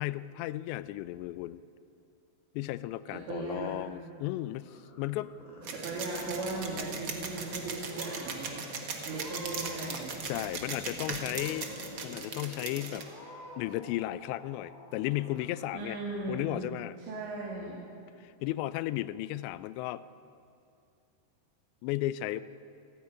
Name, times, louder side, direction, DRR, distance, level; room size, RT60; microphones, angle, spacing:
voice 1, 0.0-1.6 2.5-5.3 10.3-11.7 12.0-13.1 13.6-16.0 16.3-17.0 18.2-20.0 21.8-22.4, left 15 dB, 90° left, 16 dB, 2.8 m, -34 dB
voice 2, 3.3-3.8 5.7-10.1 15.7-16.6 17.1-17.8, right 3 dB, 90° right, -4 dB, 4.9 m, -38 dB
sound 1, 4.6-15.9, left 5 dB, 70° left, 4.3 m, -51 dB
Purr / Meow, 5.3-6.0 6.2-6.8 7.5-7.6 7.9-8.5 9.0-9.9 10.2-10.9 11.3-11.9 12.3-12.4 12.9-13.7, equal, 10° left, 4.7 m, -49 dB
sound 2, 5.6-13.0, right 4 dB, 60° right, 1.2 m, -39 dB
27.5 x 10.5 x 9.8 m, 2.5 s
omnidirectional pair, 4.9 m